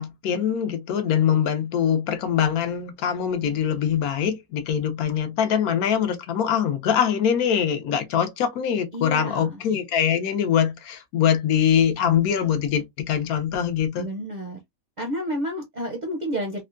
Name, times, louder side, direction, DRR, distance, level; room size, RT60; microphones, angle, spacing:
voice 1, 0.0-14.1, left 8 dB, 80° left, 1.1 m, -23 dB
voice 2, 8.9-9.6 14.0-14.6 15.0-16.6, equal, 50° right, 0.5 m, -30 dB
3.5 x 2.2 x 2.4 m
omnidirectional pair, 1.6 m